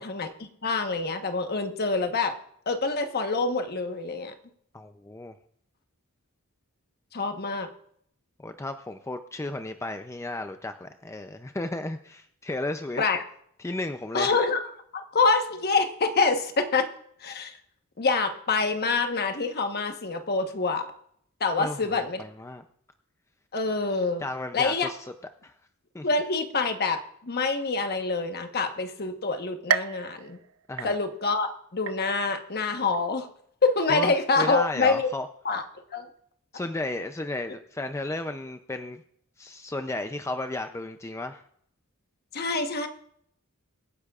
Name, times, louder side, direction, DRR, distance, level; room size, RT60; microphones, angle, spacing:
voice 1, 0.0-2.3 2.7-4.3 7.1-7.7 13.0-13.2 14.1-14.6 14.9-16.9 17.2-17.6 18.0-20.9 21.4-22.2 23.5-24.2 24.5-24.9 26.0-30.4 30.8-33.3 33.6-35.1 35.4-35.6 35.9-36.1 42.3-42.9, left 4 dB, 45° left, 6 dB, 1.2 m, -26 dB
voice 2, 4.7-5.3 8.4-13.0 13.6-14.3 21.6-22.6 24.2-25.1 25.4-25.5 25.9-26.1 30.7-31.0 33.9-35.3 36.5-39.0 39.4-41.4, left 2 dB, 15° left, 8 dB, 0.5 m, -34 dB
sound 1, 29.7-31.4 31.9-32.4 32.9-33.0 34.0-34.1, right 8 dB, 65° right, 0.4 m, -32 dB
24.0 x 10.0 x 2.4 m, 0.69 s
head